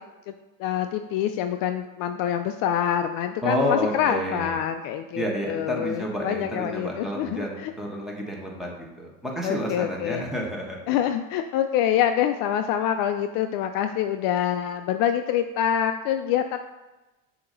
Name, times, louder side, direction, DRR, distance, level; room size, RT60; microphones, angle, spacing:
voice 1, 0.6-7.7 9.4-10.2 10.9-16.6, left 10 dB, 55° left, 7 dB, 0.5 m, -26 dB
voice 2, 3.4-4.6 5.1-10.8, equal, ahead, -3 dB, 1.4 m, -30 dB
6.7 x 2.9 x 5.3 m, 1.1 s
supercardioid pair, 105°, 41 cm